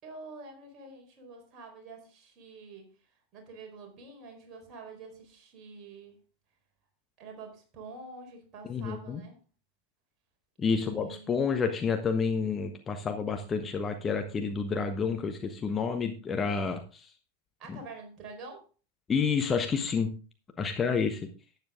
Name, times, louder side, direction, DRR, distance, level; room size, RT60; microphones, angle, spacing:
voice 1, 0.0-6.2 7.2-9.4 10.6-11.5 17.6-18.7, right 3 dB, 30° right, 2 dB, 4.3 m, -47 dB
voice 2, 8.7-9.2 10.6-17.1 17.7-17.8 19.1-20.1 20.6-21.2, left 5 dB, 20° left, 5 dB, 1.3 m, -29 dB
12.0 x 9.5 x 3.7 m, 0.34 s
figure-of-eight pair, 90°, 0 cm